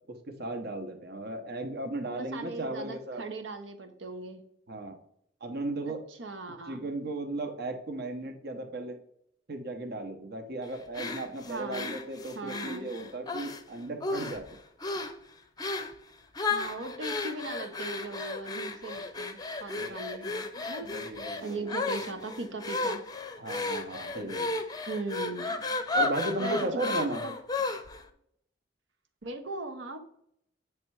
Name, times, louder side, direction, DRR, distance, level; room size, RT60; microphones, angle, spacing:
voice 1, 0.1-3.2 4.7-5.0 5.4-6.0 6.7-9.0 9.5-14.4 18.2-18.3 19.7-20.1 20.8-21.7 23.4-24.6 25.9-27.2, right 2 dB, 60° right, 5 dB, 1.0 m, -36 dB
voice 2, 2.1-4.4 5.9-6.9 11.5-11.9 12.3-12.9 16.5-20.9 21.4-23.0 24.9-25.8 26.4-26.6 26.8-27.3 29.2-30.0, right 2 dB, 85° right, 6 dB, 1.0 m, -39 dB
sound 1, 10.9-13.6 14.0-14.5 14.8-15.2 15.6-16.0 16.4-28.0, left 3 dB, 20° left, 0.5 m, -33 dB
8.5 x 3.3 x 4.7 m, 0.70 s
head